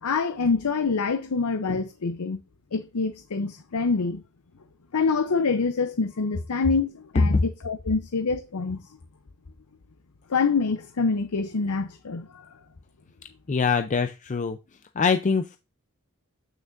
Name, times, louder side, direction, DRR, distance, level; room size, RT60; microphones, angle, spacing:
voice 1, 0.0-2.4 2.7-4.2 4.9-8.8 10.3-12.5, left 4 dB, 90° left, 0.7 m, -26 dB
voice 2, 13.5-14.6 15.0-15.6, left 4 dB, 35° left, 0.4 m, -23 dB
9.0 x 6.1 x 2.5 m
head